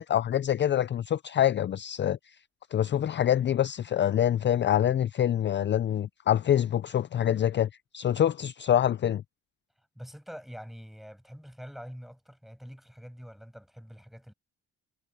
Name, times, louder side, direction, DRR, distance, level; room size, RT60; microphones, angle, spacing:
voice 1, 0.0-2.2 2.7-9.2, left 10 dB, 40° left, 0.4 m, -25 dB
voice 2, 9.9-14.3, equal, ahead, 6.4 m, -45 dB
cardioid pair, 90°, 30 cm